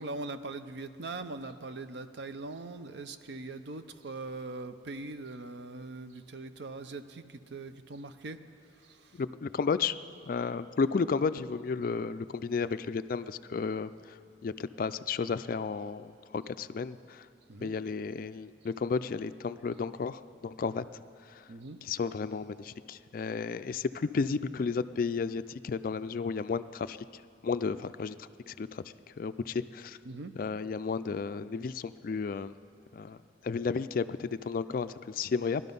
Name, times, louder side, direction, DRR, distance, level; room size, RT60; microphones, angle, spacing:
voice 1, 0.0-8.4 8.8-9.1 17.5-17.7 21.5-21.8 30.1-30.3, right 3 dB, 65° right, 10 dB, 0.6 m, -41 dB
voice 2, 9.2-10.0 10.2-14.2 14.4-17.3 17.6-20.9 21.3-21.4 21.8-27.0 27.4-28.8 29.2-30.0 30.4-32.5 32.9-33.2 33.4-35.6, left 5 dB, 45° left, 12 dB, 0.3 m, -33 dB
18.0 x 12.0 x 5.4 m, 2.4 s
head